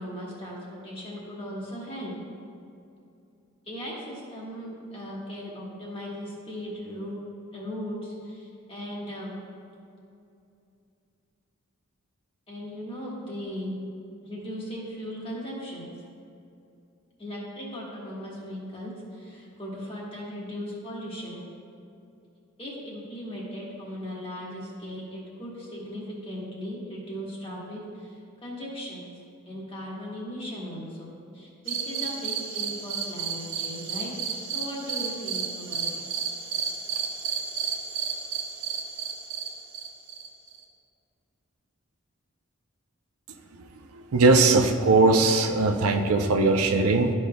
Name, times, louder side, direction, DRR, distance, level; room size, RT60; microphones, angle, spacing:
voice 1, 0.0-2.1 3.7-7.1 7.5-9.3 12.5-13.8 14.2-15.9 17.2-21.4 22.6-29.0 29.5-36.0, equal, 25° left, -5 dB, 1.4 m, -37 dB
sound 1, 31.7-40.6, right 6 dB, 60° right, 0.9 m, -32 dB
voice 2, 44.1-47.1, right 3 dB, 90° right, 5 dB, 0.5 m, -20 dB
12.0 x 5.3 x 2.3 m, 2.6 s
head